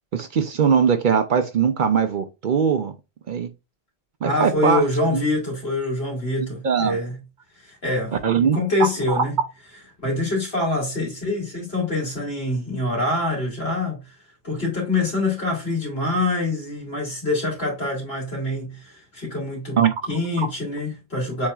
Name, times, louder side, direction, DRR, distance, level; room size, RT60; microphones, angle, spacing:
voice 1, 0.1-2.9 3.3-3.5 4.2-4.8 5.1-5.2 6.6-7.0 8.2-8.6 9.1-9.2 19.8-19.9, right 7 dB, 60° right, 0.6 m, -20 dB
voice 2, 4.2-7.2 7.6-9.4 10.0-14.0 14.4-19.8 20.1-21.5, left 2 dB, 70° left, 2.4 m, -25 dB
7.2 x 2.7 x 2.3 m
omnidirectional pair, 1.1 m